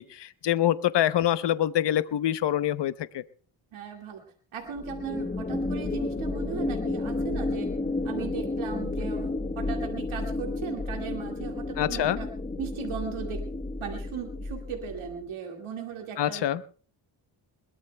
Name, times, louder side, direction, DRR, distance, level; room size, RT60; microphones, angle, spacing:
voice 1, 0.0-3.2 11.8-12.2 16.2-16.6, left 12 dB, 60° left, 14 dB, 0.8 m, -25 dB
voice 2, 3.7-4.2 4.5-7.7 8.0-12.3 12.6-13.5 13.8-16.4, right 7 dB, 85° right, 2 dB, 2.1 m, -37 dB
sound 1, 4.7-15.2, left 2 dB, 15° left, 1.1 m, -32 dB
21.5 x 21.0 x 2.2 m, 0.42 s
cardioid pair, 105°, 47 cm